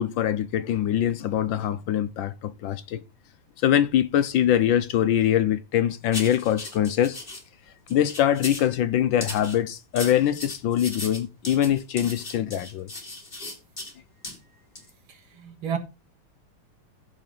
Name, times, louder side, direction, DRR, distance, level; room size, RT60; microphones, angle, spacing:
voice 1, 0.0-3.0 3.6-7.2 7.9-12.9, left 10 dB, 70° left, 1.3 m, -23 dB
sound 1, 6.1-7.4 7.9-8.7 9.2-13.9 14.2-14.4 14.8-14.9, left 2 dB, 25° left, 2.8 m, -37 dB
voice 2, 15.1-15.8, right 7 dB, 70° right, 2.4 m, -32 dB
14.5 x 5.1 x 3.8 m
omnidirectional pair, 2.4 m